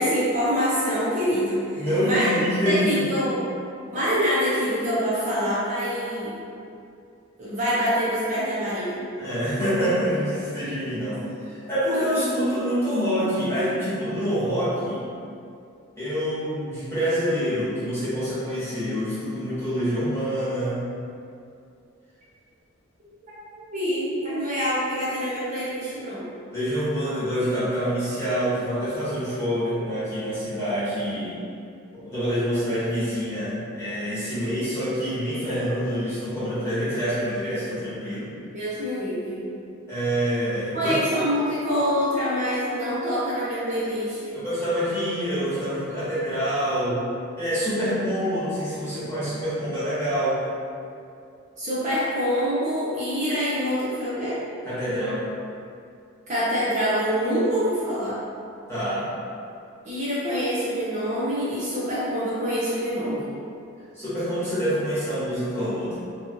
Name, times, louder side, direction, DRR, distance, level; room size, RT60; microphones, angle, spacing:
voice 1, 0.0-2.4 2.6-3.4 3.9-6.4 7.4-9.0 23.7-26.3 38.5-39.5 40.7-44.4 51.6-54.4 56.3-58.2 59.8-63.3, equal, 35° right, -10 dB, 0.6 m, -25 dB
voice 2, 1.8-3.0 9.2-11.2 11.5-15.0 16.0-20.9 26.5-31.4 31.9-38.3 39.9-41.0 44.3-47.0 47.4-50.4 54.6-55.2 58.7-59.1 63.9-66.0, equal, 10° left, -13 dB, 1.1 m, -26 dB
2.8 x 2.3 x 2.8 m, 2.5 s
head